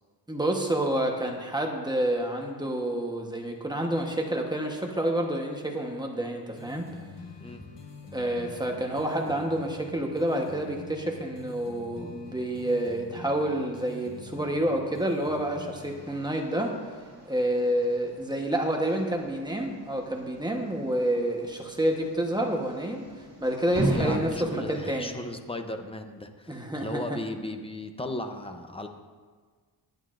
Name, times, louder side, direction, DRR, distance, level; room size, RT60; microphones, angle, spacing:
voice 1, 0.3-6.9 8.1-16.8 17.3-23.0 23.4-25.1 26.5-27.2, right 1 dB, 10° right, 1 dB, 1.1 m, -28 dB
sound 1, 6.6-16.1, left 4 dB, 70° left, 1.4 m, -45 dB
sound 2, 15.8-24.8, right 1 dB, 35° right, 2.2 m, -38 dB
voice 2, 23.9-28.9, left 2 dB, 15° left, 6 dB, 0.7 m, -36 dB
20.5 x 9.0 x 2.5 m, 1.5 s
wide cardioid pair, 150°, 43 cm